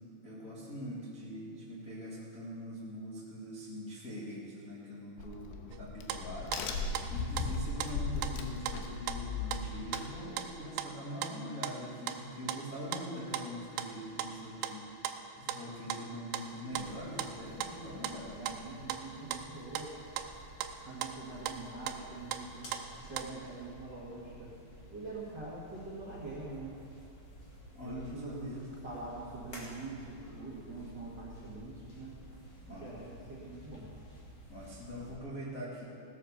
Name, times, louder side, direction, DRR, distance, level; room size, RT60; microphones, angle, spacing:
voice 1, 0.2-5.5 5.8-18.4 20.8-20.9 27.7-28.6 32.7-32.9 34.5-35.8, equal, 70° left, -7 dB, 0.8 m, -43 dB
Crack, 5.2-10.6, left 4 dB, 85° left, 3.2 m, -37 dB
sound 1, 5.7-23.4, right 10 dB, 85° right, 2.7 m, -39 dB
sound 2, 16.7-35.2, equal, 45° left, 1.4 m, -52 dB
voice 2, 18.4-20.0 20.8-22.7 23.0-24.5 24.9-26.7 27.8-32.2 32.7-33.9, right 2 dB, 60° right, -6 dB, 1.1 m, -44 dB
17.0 x 7.8 x 6.5 m, 2.5 s
omnidirectional pair, 5.2 m